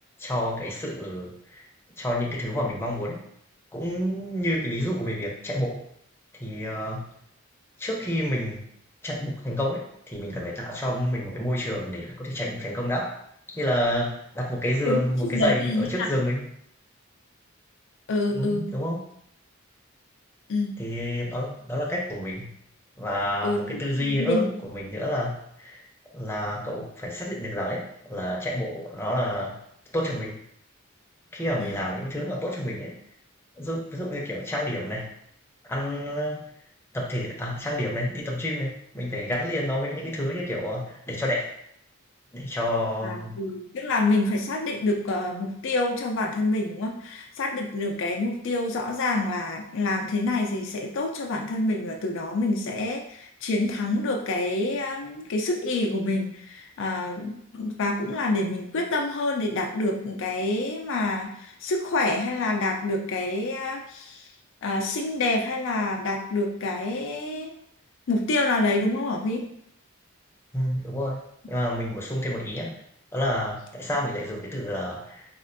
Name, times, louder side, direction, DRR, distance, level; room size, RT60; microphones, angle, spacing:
voice 1, 0.2-1.6 2.0-3.2 3.7-5.9 6.3-7.1 7.8-8.6 9.0-13.2 13.5-16.4 18.3-19.0 20.8-22.5 23.0-25.8 26.1-29.6 29.9-30.4 31.3-32.9 33.6-35.1 35.7-36.5 36.9-41.5 42.3-43.4 70.5-71.2 71.5-72.8 73.1-75.3, equal, 10° left, -3 dB, 0.6 m, -29 dB
voice 2, 15.3-16.2 18.1-18.7 20.5-20.8 23.4-24.5 31.6-31.8 43.0-64.3 64.6-67.5 68.1-69.4, left 2 dB, 65° left, 1 dB, 0.4 m, -27 dB
4.2 x 2.4 x 2.6 m, 0.70 s
head